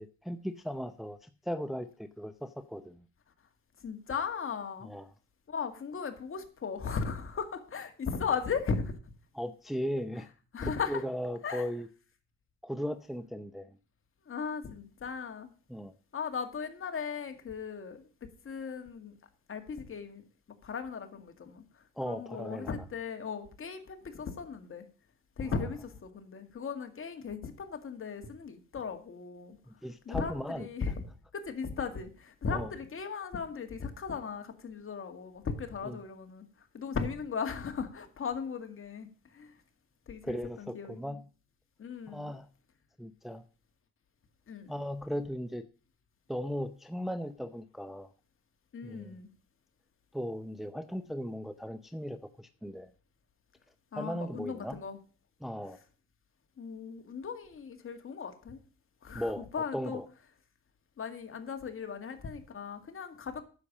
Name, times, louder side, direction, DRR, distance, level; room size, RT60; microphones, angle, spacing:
voice 1, 0.0-3.0 4.8-5.1 9.3-10.3 10.6-11.9 12.6-13.7 15.7-15.9 22.0-22.7 25.4-25.5 29.7-30.7 32.5-32.7 35.8-36.0 40.2-41.2 42.1-42.5 43.0-43.4 44.7-45.6 46.3-48.1 48.8-49.2 50.1-52.9 53.9-54.8 55.4-55.8 59.1-59.5 59.7-60.1, equal, ahead, 9 dB, 0.7 m, -37 dB
voice 2, 3.8-4.9 5.5-9.0 10.5-11.0 11.4-11.7 14.3-15.5 16.1-19.1 19.5-20.2 20.6-21.6 22.1-24.9 25.4-29.6 30.1-31.0 31.3-36.5 36.7-39.5 40.1-41.2 41.8-42.3 44.5-44.7 48.7-49.3 53.9-55.0 56.6-58.6 59.0-60.0 61.0-63.4, left 5 dB, 45° left, 7 dB, 2.0 m, -37 dB
9.7 x 7.0 x 7.3 m, 0.37 s
cardioid pair, 90°, 30 cm